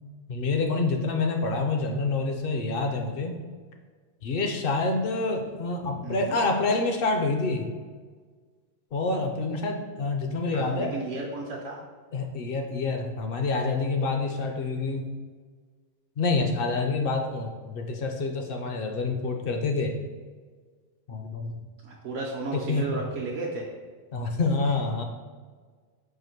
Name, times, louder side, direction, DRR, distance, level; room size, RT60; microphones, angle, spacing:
voice 1, 0.3-3.4 4.2-7.6 8.9-10.9 12.1-15.0 16.2-19.9 21.1-21.6 22.5-23.0 24.1-25.0, left 3 dB, 60° left, 4 dB, 0.7 m, -27 dB
voice 2, 6.0-6.4 10.5-11.8 21.8-23.6, right 3 dB, 75° right, -3 dB, 1.0 m, -33 dB
4.8 x 2.5 x 4.4 m, 1.5 s
omnidirectional pair, 1.3 m